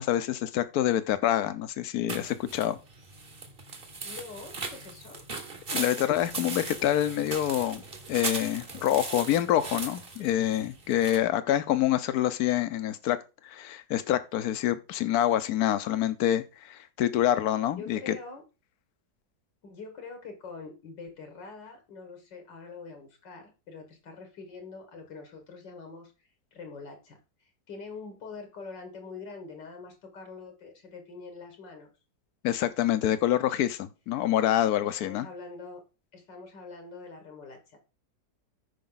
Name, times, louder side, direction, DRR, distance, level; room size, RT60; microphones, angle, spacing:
voice 1, 0.0-2.8 5.7-7.8 8.1-13.2 13.4-18.2 32.4-35.3, left 12 dB, 65° left, 1.2 m, -26 dB
sound 1, 2.1-11.2, right 3 dB, 35° right, 1.4 m, -38 dB
voice 2, 4.0-5.2 17.7-18.4 19.6-26.1 26.5-27.2 27.7-31.9 34.8-35.8 36.1-37.8, left 4 dB, 85° left, 2.3 m, -44 dB
14.0 x 5.2 x 3.9 m
omnidirectional pair, 1.9 m